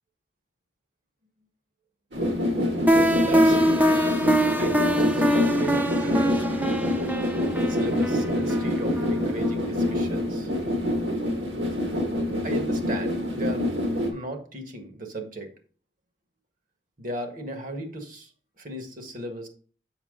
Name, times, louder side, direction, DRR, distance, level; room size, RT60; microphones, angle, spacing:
sound 1, 2.1-14.1, left 1 dB, 70° right, 2.2 m, -26 dB
sound 2, 2.9-9.6, equal, 10° right, 0.6 m, -24 dB
voice 1, 3.3-3.9 4.6-6.8 7.6-10.5 12.4-13.7 14.1-15.5 17.0-18.3 18.6-19.5, right 1 dB, 50° right, 5 dB, 1.5 m, -36 dB
7.1 x 5.9 x 3.7 m, 0.42 s
head